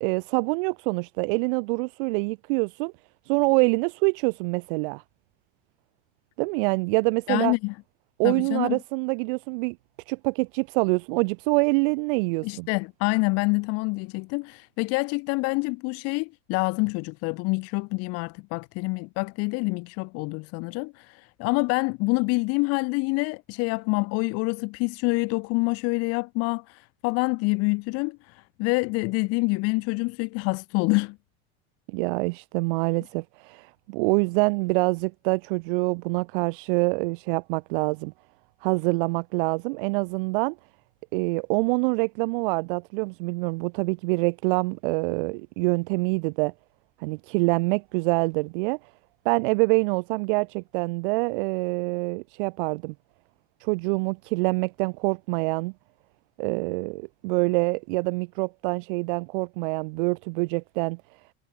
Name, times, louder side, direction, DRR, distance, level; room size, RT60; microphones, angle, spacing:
voice 1, 0.0-2.9 3.3-5.0 6.4-7.5 8.2-9.8 10.1-12.7 31.9-38.1 38.6-40.6 41.1-46.5 47.0-48.8 49.3-52.9 53.6-55.7 56.4-61.0, right 30 dB, 55° right, 0.4 m, -25 dB
voice 2, 7.3-7.7 8.2-8.8 12.4-31.2, left 28 dB, 45° left, 1.8 m, -26 dB
supercardioid pair, 165°, 33 cm